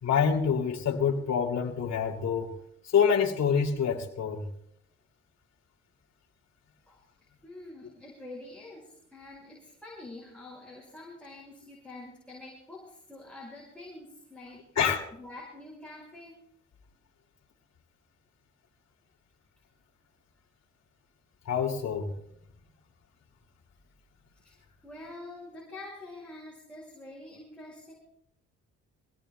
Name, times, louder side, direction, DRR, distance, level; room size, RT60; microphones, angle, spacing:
voice 1, 0.0-2.6 2.8-4.5 14.8-15.1 21.4-22.1, left 7 dB, 60° left, -1 dB, 2.7 m, -26 dB
voice 2, 7.4-14.8 15.1-16.4 24.4-27.9, left 2 dB, 5° left, -4 dB, 5.5 m, -46 dB
24.5 x 17.5 x 2.3 m, 0.69 s
cardioid pair, 90°, 30 cm